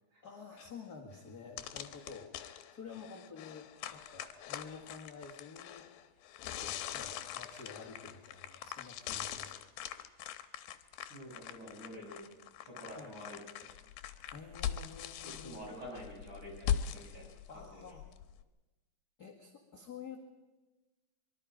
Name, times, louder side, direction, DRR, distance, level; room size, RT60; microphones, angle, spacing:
voice 1, 0.2-2.3 2.7-5.9 6.5-9.5 12.9-13.1 14.3-15.6 17.5-18.0 19.2-20.2, left 5 dB, 40° left, -1 dB, 1.5 m, -50 dB
sound 1, 0.6-0.7 1.2-1.3 1.6-18.4, left 10 dB, 80° left, 2.8 m, -42 dB
voice 2, 11.1-12.3 12.6-13.7 15.2-17.8, equal, 30° right, -2 dB, 7.9 m, -48 dB
24.5 x 22.5 x 5.1 m, 1.1 s
omnidirectional pair, 4.4 m